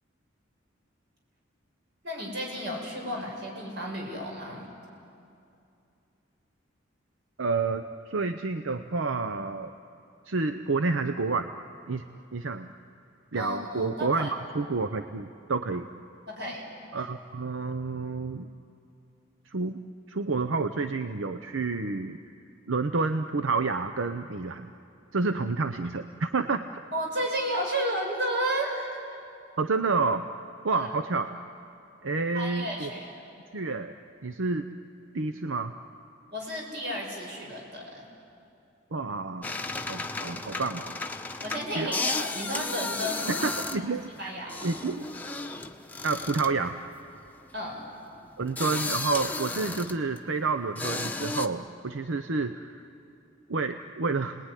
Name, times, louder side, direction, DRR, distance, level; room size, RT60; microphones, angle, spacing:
voice 1, 2.0-4.7 13.3-14.3 16.3-16.7 17.0-17.1 26.9-29.0 30.7-30.9 32.3-33.1 36.3-38.1 41.4-43.8 44.2-44.8 47.5-47.9, equal, 60° right, -1 dB, 6.5 m, -33 dB
voice 2, 7.4-9.7 10.3-11.5 11.9-12.1 12.3-12.7 13.3-14.3 14.5-15.9 16.9-18.5 19.4-19.8 20.1-22.2 22.7-24.7 25.1-26.7 29.6-30.3 30.6-31.3 32.0-32.9 33.5-34.7 35.1-35.7 38.9-39.5 39.9-41.0 41.7-41.9 43.3-44.1 44.6-45.1 46.0-46.8 48.4-52.9 53.5-54.4, right 3 dB, 85° right, 8 dB, 0.8 m, -29 dB
sound 1, 39.4-50.3 50.8-51.5, left 3 dB, 10° left, 0.9 m, -34 dB
30.0 x 20.0 x 10.0 m, 2.7 s
head